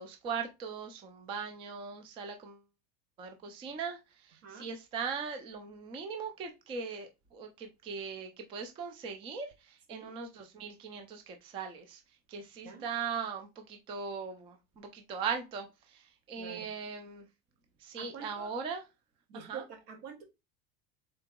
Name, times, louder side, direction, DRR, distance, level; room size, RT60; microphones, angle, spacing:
voice 1, 0.0-2.6 3.2-12.0 12.3-17.3 17.8-18.8 19.3-19.6, right 6 dB, 20° right, 0.3 m, -39 dB
voice 2, 16.4-16.7 17.9-18.6 19.3-20.2, right 7 dB, 70° right, 1.4 m, -46 dB
3.8 x 2.8 x 3.6 m
supercardioid pair, 155°, 32 cm